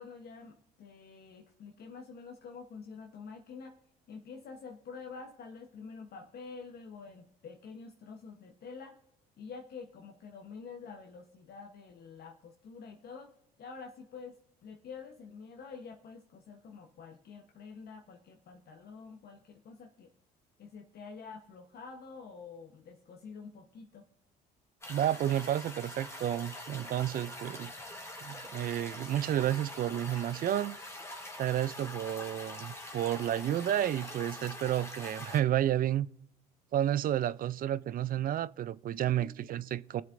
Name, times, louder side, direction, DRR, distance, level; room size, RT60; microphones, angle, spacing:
voice 1, 0.0-3.8 4.1-9.0 9.4-20.1 20.6-24.1 39.1-39.4, left 5 dB, 55° left, 1.0 m, -48 dB
sound 1, 24.8-35.4, left 1 dB, 15° left, 1.9 m, -44 dB
voice 2, 24.9-27.7 28.2-30.8 31.4-36.1 36.7-40.0, right 11 dB, 50° right, 0.4 m, -31 dB
21.0 x 7.3 x 2.6 m
hypercardioid pair, 65°, 20 cm